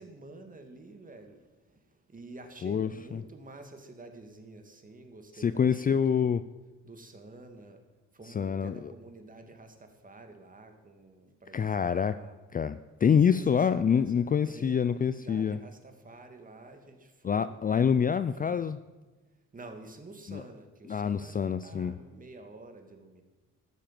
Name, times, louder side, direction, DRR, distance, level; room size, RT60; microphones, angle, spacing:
voice 1, 0.0-6.3 6.8-7.8 8.1-12.4 13.2-18.0 18.4-18.7 19.5-23.2, right 2 dB, 25° right, 5 dB, 2.3 m, -49 dB
voice 2, 2.6-3.2 5.4-6.4 8.4-8.8 11.5-12.1 12.5-15.6 17.2-18.8 20.3-20.4 20.9-21.9, left 7 dB, 30° left, 13 dB, 0.4 m, -26 dB
12.5 x 9.6 x 7.5 m, 1.2 s
cardioid pair, 90°, 30 cm